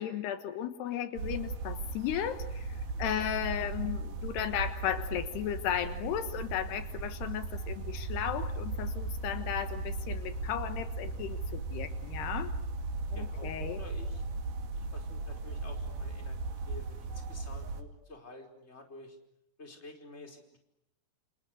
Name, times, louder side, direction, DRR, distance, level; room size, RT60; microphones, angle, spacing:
voice 1, 0.0-12.5 13.1-13.8, left 10 dB, 75° left, 10 dB, 3.4 m, -35 dB
sound 1, 1.2-17.8, right 3 dB, 60° right, 3.9 m, -37 dB
voice 2, 13.1-14.2 14.7-19.2 19.6-20.6, left 2 dB, 15° left, 4 dB, 4.7 m, -50 dB
29.0 x 28.5 x 6.4 m, 0.81 s
omnidirectional pair, 4.8 m